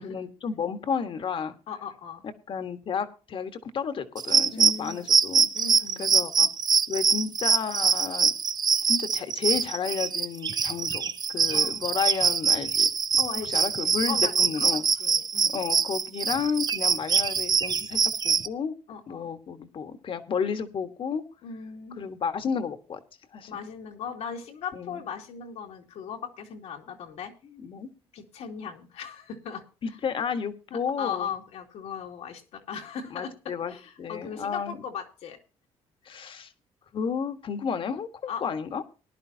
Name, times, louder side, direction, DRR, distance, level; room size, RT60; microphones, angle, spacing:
voice 1, 0.0-1.5 2.5-5.5 6.0-6.5 6.9-8.3 8.8-12.9 13.5-14.8 15.5-18.7 19.1-21.2 22.0-23.0 23.3-23.6 24.7-25.0 27.5-27.9 29.8-31.3 33.1-33.7 34.0-34.8 36.0-36.5 36.9-38.8, left 6 dB, 50° left, 9 dB, 1.5 m, -32 dB
voice 2, 1.7-2.2 4.5-5.0 5.5-6.1 11.5-11.9 13.2-15.5 18.9-19.3 21.4-22.1 23.5-27.3 28.1-30.0 30.7-35.4 38.3-38.6, left 7 dB, 80° left, 2 dB, 2.4 m, -38 dB
sound 1, 4.2-18.5, right 6 dB, 40° right, 0.7 m, -24 dB
18.5 x 11.0 x 2.8 m, 0.34 s
cardioid pair, 105°, 11 cm